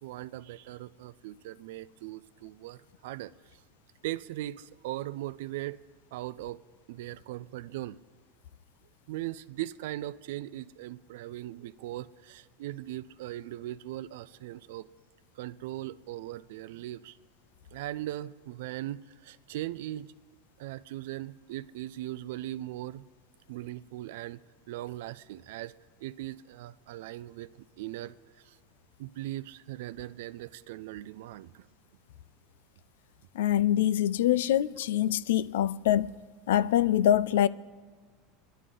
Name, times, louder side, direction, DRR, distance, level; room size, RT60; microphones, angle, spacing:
voice 1, 0.0-3.6 4.0-5.8 6.1-6.6 6.9-8.0 9.1-14.9 15.4-17.2 17.7-20.1 20.6-23.0 23.5-25.7 26.0-28.6 29.0-31.7, right 15 dB, 75° right, 0.3 m, -39 dB
voice 2, 33.3-36.1 36.5-37.5, left 11 dB, 85° left, 0.4 m, -24 dB
22.5 x 11.0 x 3.8 m
supercardioid pair, 125°, 0 cm